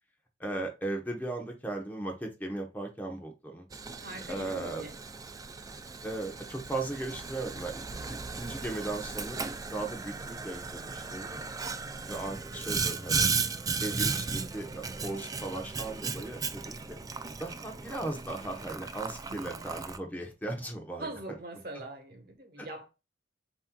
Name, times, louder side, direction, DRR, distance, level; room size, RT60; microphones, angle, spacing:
voice 1, 0.4-3.7 4.3-4.8 6.0-9.4 9.7-11.4 12.1-13.3 13.8-17.0 17.4-21.1 22.6-22.7, right 2 dB, 10° left, 0.9 m, -37 dB
Boiling, 3.7-20.0, right 4 dB, 20° right, 0.3 m, -36 dB
voice 2, 4.0-5.0 7.9-8.2 11.7-12.1 19.3-19.6 21.0-22.9, right 2 dB, 55° right, 1.3 m, -43 dB
7.5 x 2.9 x 2.3 m
head